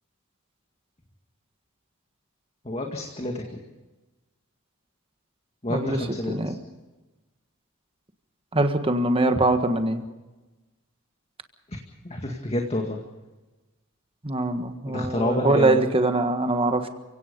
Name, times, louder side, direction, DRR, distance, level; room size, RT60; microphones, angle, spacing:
voice 1, 2.6-3.6 5.6-6.5 12.0-13.0 14.9-15.8, left 1 dB, 30° left, 2 dB, 2.1 m, -28 dB
voice 2, 8.5-10.0 14.2-16.9, right 2 dB, 25° right, 7 dB, 1.6 m, -23 dB
30.0 x 17.0 x 5.3 m, 1.1 s
head